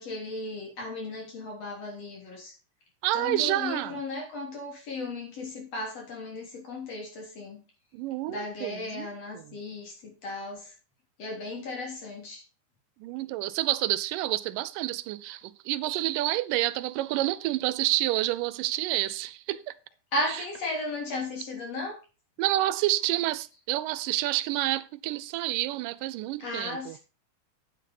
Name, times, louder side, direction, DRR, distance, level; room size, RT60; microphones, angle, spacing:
voice 1, 0.0-2.5 3.1-7.6 8.3-10.7 11.2-12.4 20.1-22.0 26.4-27.0, left 2 dB, 50° left, 4.1 m, -35 dB
voice 2, 3.0-4.0 7.9-9.1 9.3-9.6 13.0-19.7 20.3-20.4 22.4-27.0, right 16 dB, 85° right, 2.2 m, -29 dB
9.1 x 6.2 x 5.4 m
omnidirectional pair, 3.8 m